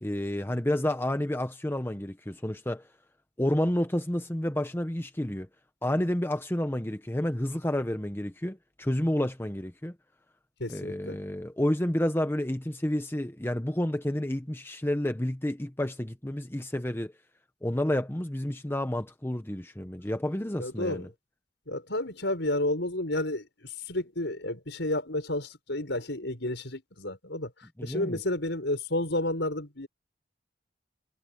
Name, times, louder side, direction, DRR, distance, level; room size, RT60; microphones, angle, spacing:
voice 1, 0.0-2.9 3.4-5.5 5.8-9.9 10.7-17.1 17.6-21.1 27.8-28.2, left 1 dB, 10° left, 0.8 m, -30 dB
voice 2, 10.6-11.2 20.6-21.0 21.7-27.5 27.8-29.9, left 1 dB, 65° left, 6.0 m, -31 dB
head